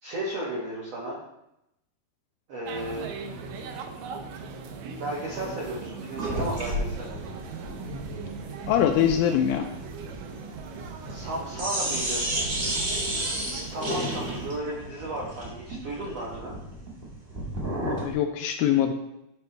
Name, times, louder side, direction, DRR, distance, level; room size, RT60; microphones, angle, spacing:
voice 1, 0.0-1.2 2.5-3.1 5.0-7.1 11.1-12.2 13.6-16.5, right 1 dB, 70° right, -5 dB, 1.5 m, -34 dB
sound 1, 2.7-14.6, right 5 dB, 90° right, 1.8 m, -39 dB
sound 2, 6.1-11.3 11.5-18.1, right 1 dB, 55° right, 0.6 m, -32 dB
voice 2, 8.7-9.7 17.8-18.9, left 9 dB, 90° left, 5 dB, 2.1 m, -23 dB
13.5 x 4.5 x 3.3 m, 0.84 s
omnidirectional pair, 4.8 m